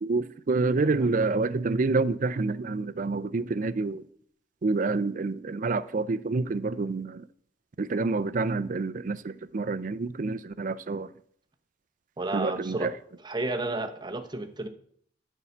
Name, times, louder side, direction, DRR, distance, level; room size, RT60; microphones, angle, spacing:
voice 1, 0.0-4.0 4.6-7.2 7.8-11.1 12.3-12.9, right 3 dB, 45° right, 0.5 m, -28 dB
voice 2, 12.2-12.9 13.2-14.7, right 2 dB, 25° right, 0.8 m, -32 dB
9.7 x 4.6 x 7.0 m
head